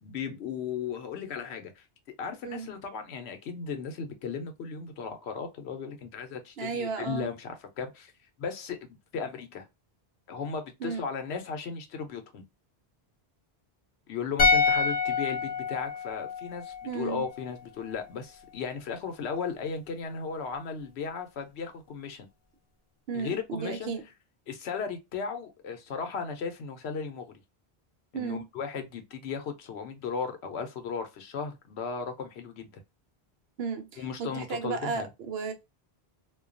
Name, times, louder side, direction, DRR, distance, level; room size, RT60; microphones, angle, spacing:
voice 1, 0.0-1.9 2.2-8.1 8.4-8.8 9.1-9.7 10.3-12.4 14.1-22.3 23.1-23.9 24.5-27.3 28.1-32.8 34.0-35.1, left 6 dB, 85° left, 0.9 m, -36 dB
voice 2, 6.6-7.3 10.8-11.1 16.8-17.2 23.1-24.0 28.1-28.5 33.6-35.5, right 5 dB, 75° right, 0.9 m, -34 dB
sound 1, 14.4-17.6 17.9-18.0, left 4 dB, 45° left, 0.6 m, -27 dB
2.3 x 2.2 x 2.4 m
omnidirectional pair, 1.1 m